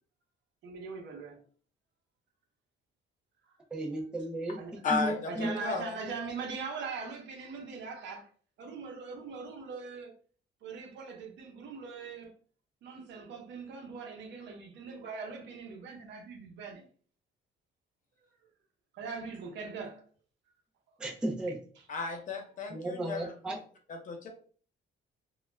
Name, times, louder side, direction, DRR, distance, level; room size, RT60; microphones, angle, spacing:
voice 1, 0.6-1.4 3.5-3.6 4.6-4.8 5.3-8.3 8.6-10.2 10.6-12.3 12.8-16.9 18.9-20.1, right 4 dB, 70° right, 0.7 m, -41 dB
voice 2, 3.7-5.6 21.0-21.6 22.7-23.6, right 1 dB, 5° right, 0.3 m, -34 dB
voice 3, 4.8-5.9 21.9-23.6 23.9-24.3, left 4 dB, 45° left, 0.6 m, -34 dB
2.2 x 2.0 x 3.2 m
cardioid pair, 160°, 19 cm